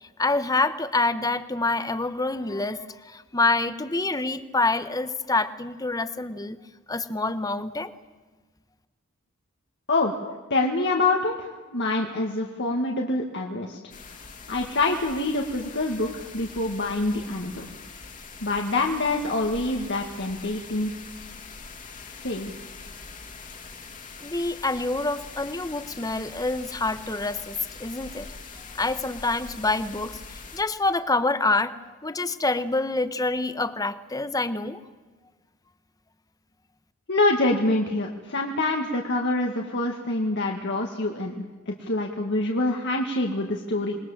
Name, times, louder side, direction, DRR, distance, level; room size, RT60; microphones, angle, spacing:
voice 1, 0.0-6.6 6.9-7.9 24.2-28.3 28.7-34.8, left 3 dB, 15° left, 12 dB, 1.1 m, -27 dB
voice 2, 10.5-13.8 14.5-17.6 18.4-20.9 22.1-22.5 37.1-44.0, left 2 dB, 55° left, 1 dB, 2.1 m, -26 dB
sound 1, 13.9-30.6, left 4 dB, 40° left, 2.7 m, -43 dB
27.5 x 21.0 x 7.4 m, 1.3 s
head